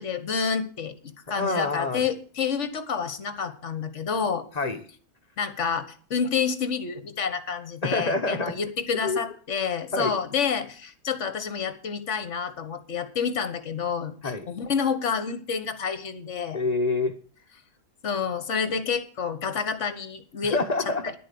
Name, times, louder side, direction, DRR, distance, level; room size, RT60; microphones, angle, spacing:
voice 1, 0.0-4.4 5.4-16.6 18.0-20.6, left 6 dB, 55° left, 12 dB, 1.5 m, -29 dB
voice 2, 1.3-2.0 4.5-4.8 7.8-8.5 9.0-9.2 9.9-10.1 14.2-14.5 16.5-17.2 20.4-21.1, left 3 dB, 30° left, 7 dB, 0.9 m, -27 dB
10.5 x 8.5 x 6.9 m, 0.42 s
omnidirectional pair, 1.6 m